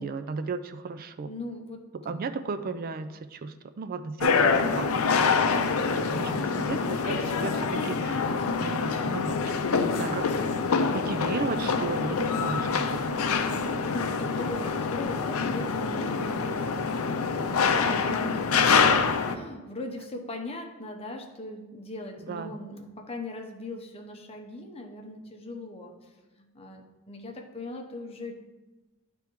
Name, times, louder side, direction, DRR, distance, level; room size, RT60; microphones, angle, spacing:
voice 1, 0.0-1.3 2.1-5.6 6.1-6.3 6.7-8.2 8.6-9.4 9.8-13.1 22.3-22.5, right 4 dB, 45° right, 10 dB, 0.4 m, -35 dB
voice 2, 1.2-2.3 13.3-17.1 17.4-26.1 26.4-28.3, left 1 dB, 30° left, 3 dB, 0.8 m, -39 dB
sound 1, 4.2-19.3, left 5 dB, 80° left, 0.5 m, -26 dB
10.0 x 3.5 x 4.6 m, 1.1 s
head